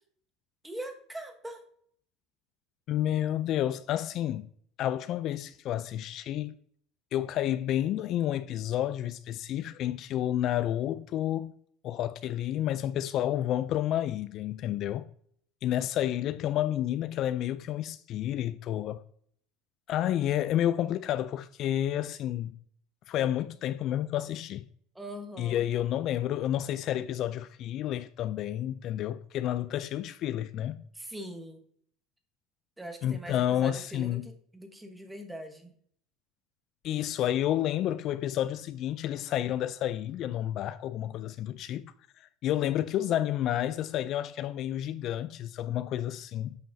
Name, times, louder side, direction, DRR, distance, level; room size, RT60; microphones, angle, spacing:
voice 1, 0.6-1.6 24.9-25.6 30.9-31.6 32.8-35.7, right 1 dB, 5° right, 1.1 m, -42 dB
voice 2, 2.9-4.5 4.8-6.6 7.1-11.5 11.8-15.1 15.6-19.0 19.9-22.6 23.1-24.6 25.4-30.8 33.0-34.3 36.8-46.6, left 12 dB, 45° left, 0.3 m, -30 dB
8.9 x 5.7 x 2.6 m
supercardioid pair, 130°, 0 cm